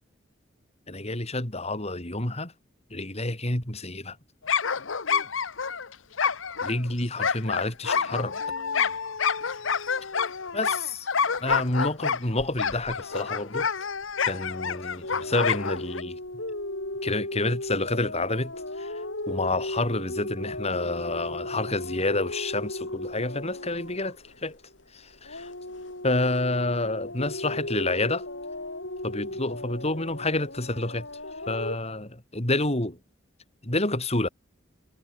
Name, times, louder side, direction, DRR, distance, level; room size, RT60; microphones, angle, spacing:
voice 1, 0.9-2.5 2.9-4.2 6.6-8.3 10.5-11.0 11.4-13.7 14.3-16.2 17.0-18.9 19.3-24.2 24.4-24.6 24.9-25.5 26.0-28.3 29.0-31.1 31.5-33.0 33.6-34.3, left 2 dB, 35° left, 3.9 m, -28 dB
sound 1, 4.4-16.0, left 6 dB, 85° left, 1.2 m, -28 dB
sound 2, 15.0-24.8 25.2-31.8, left 1 dB, 70° left, 7.5 m, -36 dB
head